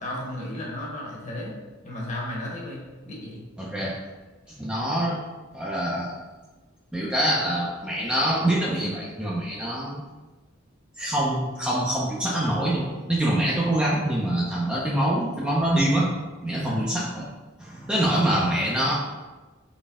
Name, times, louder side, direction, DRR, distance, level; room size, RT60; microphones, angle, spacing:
voice 1, 0.0-1.6 1.8-3.4 16.6-16.8, left 1 dB, 35° left, -3 dB, 1.1 m, -34 dB
voice 2, 3.6-4.0 4.6-5.2 5.5-6.1 6.9-10.0 11.0-16.1 16.4-17.3 17.6-18.9, right 1 dB, 5° right, -6 dB, 0.5 m, -25 dB
4.1 x 3.1 x 3.5 m, 1.2 s
head